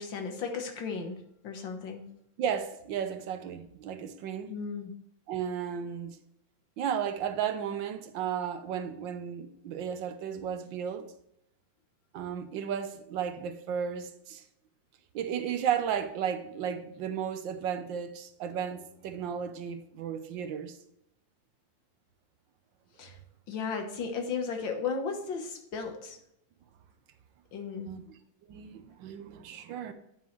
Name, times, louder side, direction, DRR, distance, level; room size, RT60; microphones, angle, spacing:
voice 1, 0.0-2.0 4.5-4.9 23.0-23.2 23.5-26.2 27.5-27.9, left 5 dB, 75° left, 1.9 m, -35 dB
voice 2, 2.4-4.5 5.3-6.2 6.8-11.1 12.1-14.4 15.1-20.8 27.9-28.0 28.5-29.9, right 8 dB, 75° right, 1.5 m, -34 dB
9.7 x 5.5 x 3.1 m
omnidirectional pair, 2.1 m